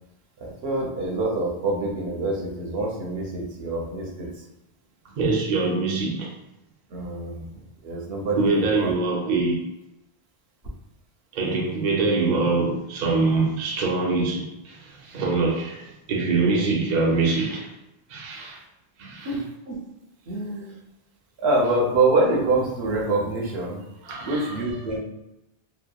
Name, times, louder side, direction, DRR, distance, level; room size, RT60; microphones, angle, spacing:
voice 1, 0.4-4.3 6.9-8.9 19.2-19.8 20.3-20.7 21.4-23.8 24.2-25.0, right 2 dB, 70° right, 0.9 m, -25 dB
voice 2, 5.2-6.3 8.4-9.6 11.3-17.7 18.1-18.6 19.0-19.4 24.0-24.7, right 3 dB, 55° right, 0.5 m, -24 dB
2.8 x 2.1 x 2.2 m
omnidirectional pair, 1.1 m